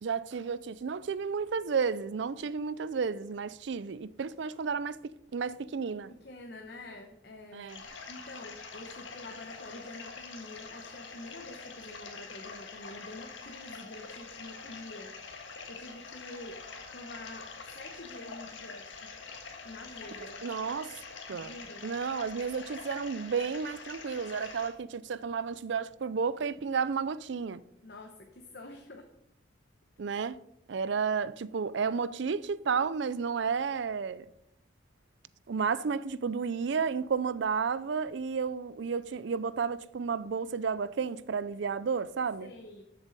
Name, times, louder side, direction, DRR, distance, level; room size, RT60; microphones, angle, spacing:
voice 1, 0.0-6.1 7.5-7.8 20.4-21.0 21.3-21.5 21.8-27.6 30.0-30.4 30.7-34.3 35.5-42.5, right 5 dB, 65° right, 0.4 m, -32 dB
voice 2, 6.1-7.7 8.1-15.2 15.4-19.1 19.6-20.4 21.3-21.9 24.3-24.5 27.8-29.1 42.4-42.8, left 1 dB, 55° left, 1.0 m, -47 dB
sound 1, 7.7-24.7, left 5 dB, 75° left, 1.6 m, -45 dB
12.5 x 7.2 x 4.1 m
head